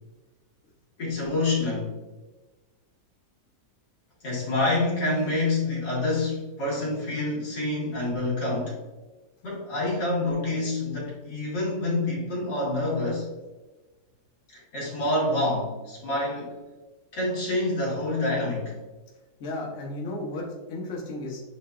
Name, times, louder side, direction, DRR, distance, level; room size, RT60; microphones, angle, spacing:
voice 1, 1.0-1.9 4.2-8.8 9.4-13.3 14.5-16.6 17.1-18.8, left 2 dB, 85° left, -6 dB, 2.4 m, -27 dB
voice 2, 19.4-21.4, left 2 dB, 50° left, -3 dB, 1.2 m, -34 dB
7.6 x 2.6 x 2.3 m, 1.2 s
omnidirectional pair, 1.9 m